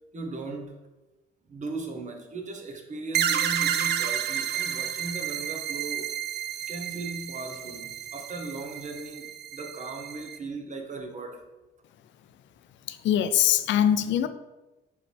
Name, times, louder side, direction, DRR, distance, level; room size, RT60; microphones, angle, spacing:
voice 1, 0.1-0.8 1.5-6.1 6.7-11.4, right 3 dB, 40° right, 3 dB, 0.9 m, -37 dB
sound 1, 3.1-10.4, right 10 dB, 55° right, 0.4 m, -31 dB
voice 2, 12.9-14.3, left 10 dB, 70° left, 11 dB, 0.4 m, -23 dB
4.9 x 3.3 x 3.3 m, 1.1 s
cardioid pair, 90°, 20 cm